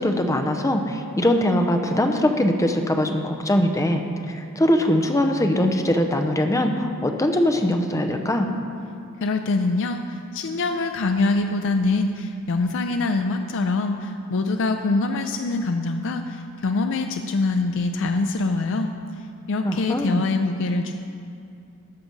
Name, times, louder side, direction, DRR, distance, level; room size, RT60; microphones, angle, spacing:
voice 1, 0.0-8.5 19.6-20.2, left 1 dB, 15° left, 5 dB, 0.6 m, -22 dB
voice 2, 9.2-18.9 19.2-21.0, left 3 dB, 60° left, 6 dB, 0.4 m, -24 dB
13.5 x 6.0 x 5.3 m, 2.5 s
head